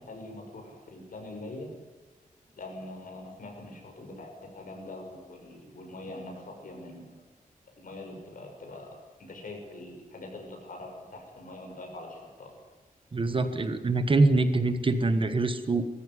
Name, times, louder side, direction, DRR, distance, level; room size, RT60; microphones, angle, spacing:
voice 1, 0.0-1.7 2.6-7.2 7.8-12.6, left 2 dB, 75° left, 2 dB, 6.3 m, -43 dB
voice 2, 13.1-15.9, right 3 dB, 35° right, 9 dB, 1.4 m, -24 dB
20.5 x 14.5 x 9.9 m, 1.2 s
wide cardioid pair, 155°, 14 cm